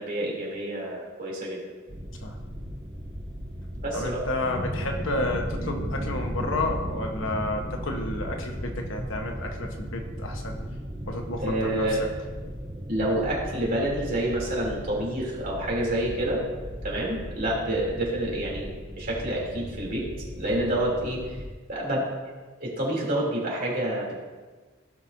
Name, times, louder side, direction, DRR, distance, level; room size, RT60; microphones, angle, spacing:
voice 1, 0.0-1.6 3.8-4.2 11.4-12.0 12.9-16.5 16.8-18.7 18.9-20.0 20.3-21.2 21.7-22.0 22.6-24.2, right 1 dB, 45° right, -4 dB, 3.2 m, -28 dB
sound 1, 1.9-21.5, equal, 25° right, 0.8 m, -36 dB
voice 2, 3.9-10.6 11.1-12.1, left 2 dB, 70° left, 3 dB, 1.2 m, -31 dB
16.5 x 5.9 x 2.7 m, 1.3 s
head